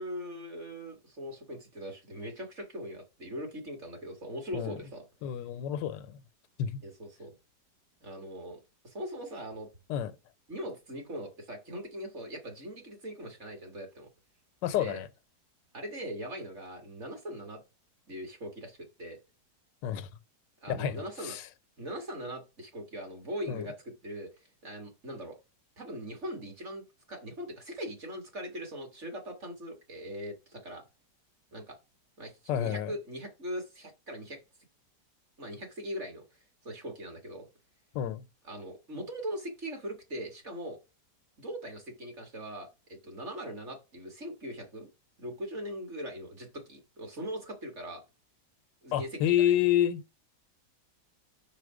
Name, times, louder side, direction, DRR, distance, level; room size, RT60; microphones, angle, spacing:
voice 1, 0.0-5.0 6.8-7.3 8.0-8.6 8.8-9.7 10.5-14.1 14.8-15.0 15.7-17.6 18.1-19.2 20.6-21.4 21.8-23.8 24.0-24.3 24.6-25.4 25.8-26.8 27.1-30.8 31.5-31.8 32.2-34.4 35.4-36.2 36.6-37.5 38.5-40.8 41.4-44.9 45.2-48.0 48.8-49.5, equal, 40° right, 2.0 m, -40 dB
voice 2, 5.2-6.2 6.6-6.8 9.9-10.1 14.6-15.1 19.8-20.1 20.7-21.5 23.5-23.7 32.5-32.9 37.9-38.2 48.9-50.0, left 11 dB, 80° left, 1.3 m, -29 dB
5.0 x 4.3 x 4.8 m
omnidirectional pair, 1.9 m